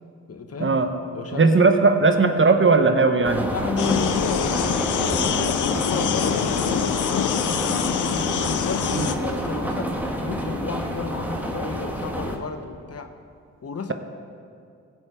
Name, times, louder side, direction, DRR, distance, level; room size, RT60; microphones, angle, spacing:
voice 1, 0.3-0.8 1.1-1.6 3.5-4.6 4.9-7.9 8.4-13.1 13.6-13.9, left 4 dB, 45° left, 7 dB, 1.0 m, -32 dB
voice 2, 1.3-3.5 8.9-9.1, right 3 dB, 40° right, 7 dB, 1.0 m, -18 dB
sound 1, 3.2-12.4, equal, 5° right, 1.6 m, -28 dB
sound 2, 3.8-9.2, left 9 dB, 65° left, 0.7 m, -25 dB
16.5 x 5.6 x 4.9 m, 2.3 s
supercardioid pair, 45°, 32 cm